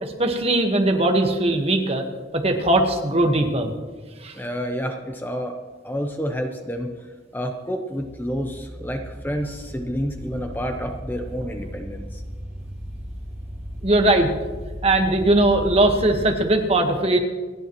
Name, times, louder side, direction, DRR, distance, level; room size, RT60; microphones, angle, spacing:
voice 1, 0.0-2.0 2.3-3.7 4.2-4.3 13.8-14.3 14.8-17.2, right 2 dB, 30° right, 4 dB, 1.4 m, -19 dB
voice 2, 4.3-5.6 5.8-6.9 7.3-12.2, equal, 10° left, 4 dB, 0.8 m, -29 dB
sound 1, 8.0-16.3, equal, 5° right, 3.5 m, -36 dB
28.0 x 10.0 x 3.1 m, 1.4 s
head